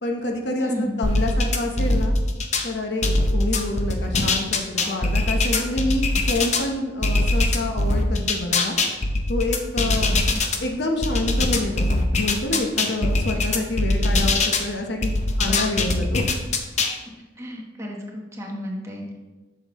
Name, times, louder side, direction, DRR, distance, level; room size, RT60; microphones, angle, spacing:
voice 1, 0.0-2.1 2.6-8.8 9.3-10.1 10.6-15.1 15.4-16.3, left 2 dB, 65° left, 3 dB, 1.0 m, -27 dB
voice 2, 0.6-1.0 10.3-10.4 13.3-13.4 15.5-15.6 17.4-19.2, left 1 dB, 15° right, -1 dB, 1.0 m, -32 dB
sound 1, 1.0-2.7 3.0-6.6 7.0-10.6 11.0-14.7 15.0-17.0, left 2 dB, 40° left, 0.6 m, -22 dB
8.2 x 6.0 x 3.1 m, 1.2 s
head